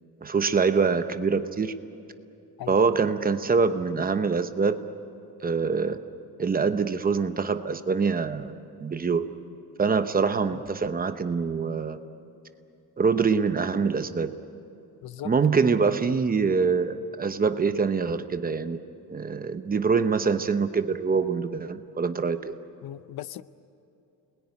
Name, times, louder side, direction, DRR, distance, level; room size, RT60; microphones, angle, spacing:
voice 1, 0.2-1.7 2.7-4.8 5.4-6.0 6.4-8.5 8.8-9.3 9.8-12.0 13.0-14.3 15.2-18.8 19.1-22.5, right 5 dB, 25° right, 10 dB, 0.8 m, -24 dB
voice 2, 15.0-15.3 22.8-23.4, left 13 dB, 75° left, 15 dB, 0.7 m, -38 dB
29.5 x 21.0 x 9.8 m, 2.7 s
cardioid pair, 180°, 37 cm